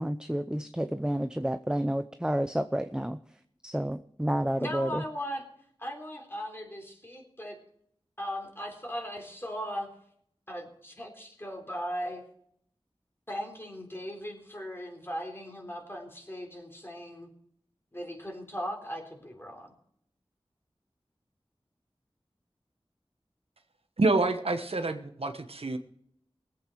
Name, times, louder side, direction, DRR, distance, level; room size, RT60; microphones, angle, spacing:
voice 1, 0.0-3.2 3.6-5.0, right 1 dB, 10° right, 10 dB, 0.6 m, -30 dB
voice 2, 4.6-5.4 5.8-7.6 8.2-9.9 10.5-12.2 13.3-17.3 17.9-19.7, equal, 25° left, 1 dB, 3.8 m, -38 dB
voice 3, 24.0-25.8, right 2 dB, 80° right, 7 dB, 1.2 m, -27 dB
20.0 x 8.4 x 4.6 m, 0.67 s
wide cardioid pair, 55°, 10 cm